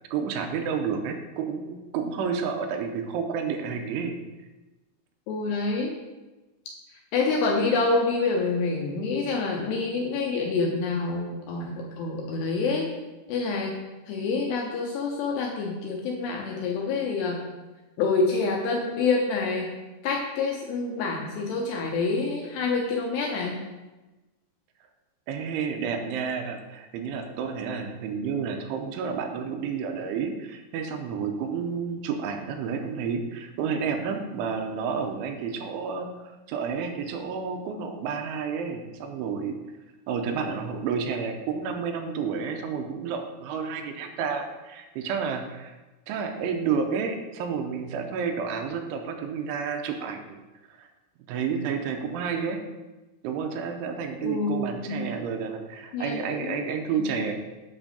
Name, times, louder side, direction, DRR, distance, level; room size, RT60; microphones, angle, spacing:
voice 1, 0.1-4.1 25.3-36.1 36.5-39.6 40.1-45.7 46.1-50.4 50.7-50.9 51.3-52.6 53.2-57.3, right 6 dB, 85° right, 4 dB, 3.1 m, -30 dB
voice 2, 5.3-6.0 7.1-12.9 13.3-13.7 14.1-17.4 18.0-19.7 20.0-23.6 54.2-55.0 55.9-56.6 57.0-57.2, left 4 dB, 75° left, 0 dB, 2.5 m, -27 dB
8.8 x 6.1 x 5.1 m, 1.1 s
omnidirectional pair, 5.7 m